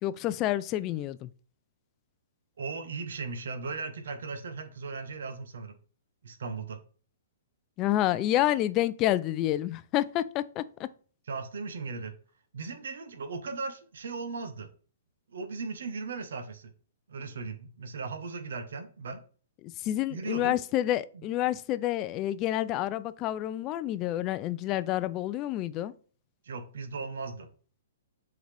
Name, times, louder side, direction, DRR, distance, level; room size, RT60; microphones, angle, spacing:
voice 1, 0.0-1.3 7.8-10.9 19.6-25.9, left 13 dB, 25° left, 0.3 m, -29 dB
voice 2, 2.6-5.7 6.2-6.8 11.3-12.1 12.5-14.7 15.3-16.7 17.1-19.2 20.1-20.6 21.1-21.2 26.4-27.5, right 4 dB, 80° right, 1.0 m, -37 dB
7.8 x 3.9 x 3.3 m
hypercardioid pair, 165°, 0 cm